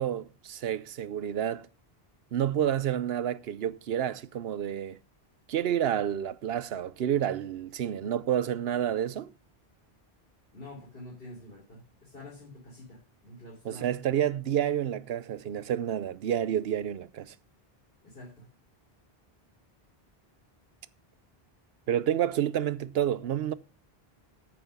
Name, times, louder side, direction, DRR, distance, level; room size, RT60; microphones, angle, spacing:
voice 1, 0.0-1.7 2.3-5.0 5.5-9.3 13.6-17.3 21.9-23.5, right 10 dB, 75° right, 0.9 m, -29 dB
voice 2, 10.5-13.9 18.0-18.5, left 1 dB, 65° left, 3.9 m, -47 dB
8.8 x 8.0 x 5.8 m
omnidirectional pair, 1.0 m